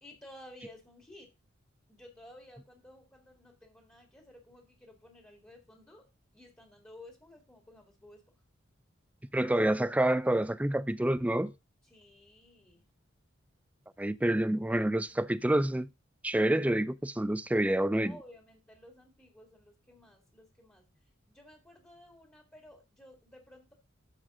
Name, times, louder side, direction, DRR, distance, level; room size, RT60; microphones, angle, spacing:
voice 1, 0.0-1.3 1.9-6.1 6.3-8.3 11.8-12.9 17.9-20.8 21.3-23.7, left 1 dB, 10° left, 2.0 m, -54 dB
voice 2, 9.3-11.5 14.0-15.9 16.2-18.1, right 1 dB, 5° right, 0.4 m, -28 dB
10.0 x 6.8 x 3.7 m
head